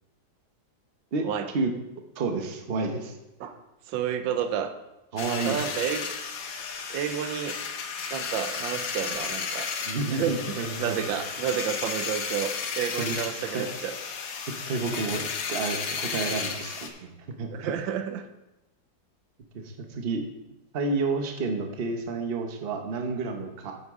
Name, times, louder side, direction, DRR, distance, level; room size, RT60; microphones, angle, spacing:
voice 1, 2.2-3.1 5.1-5.6 9.9-11.2 13.0-13.2 13.5-13.7 14.7-17.1 17.4-17.7 19.5-20.2 20.7-23.7, right 3 dB, 40° right, 4 dB, 0.9 m, -30 dB
voice 2, 3.9-4.7 5.4-6.1 6.9-7.6 8.1-9.7 10.1-14.0 17.5-18.3, right 9 dB, 85° right, 9 dB, 1.4 m, -30 dB
sound 1, 5.2-16.9, left 6 dB, 55° left, 1.1 m, -33 dB
9.4 x 8.0 x 3.6 m, 0.95 s
omnidirectional pair, 2.0 m